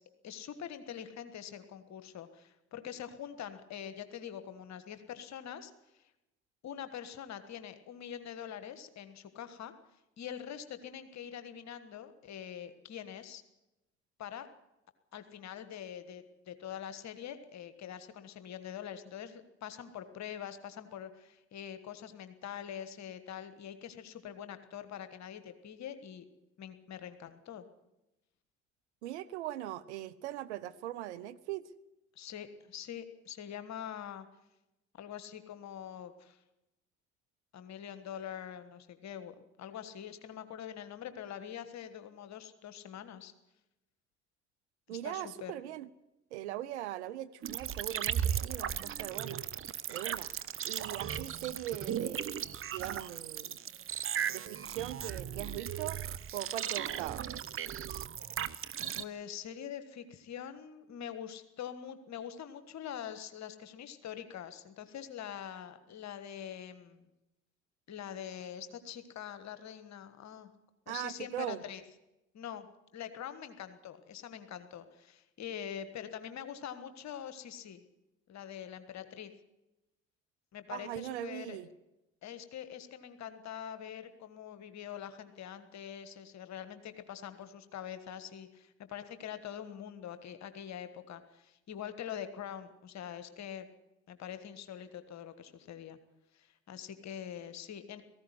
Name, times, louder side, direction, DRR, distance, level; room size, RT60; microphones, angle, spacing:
voice 1, 0.2-6.1 6.6-9.7 10.2-13.4 14.2-14.5 15.1-26.3 26.6-27.6 32.1-34.3 34.9-36.4 37.5-43.3 44.9-45.5 58.9-67.1 67.9-70.5 70.9-71.8 72.3-72.7 72.9-77.8 78.3-79.3 80.5-81.6 82.2-93.7 94.1-96.0 96.3-98.0, left 9 dB, 50° left, 11 dB, 1.5 m, -44 dB
voice 2, 29.0-31.6 44.9-45.9 46.3-49.4 49.9-50.3 50.6-52.4 52.7-53.6 54.3-56.0 56.3-57.3 70.9-71.6 80.7-81.7, right 13 dB, 75° right, 14 dB, 0.7 m, -40 dB
sound 1, 47.4-59.0, right 9 dB, 40° right, 0.9 m, -37 dB
18.0 x 15.0 x 9.7 m, 0.95 s
figure-of-eight pair, 45°, 35 cm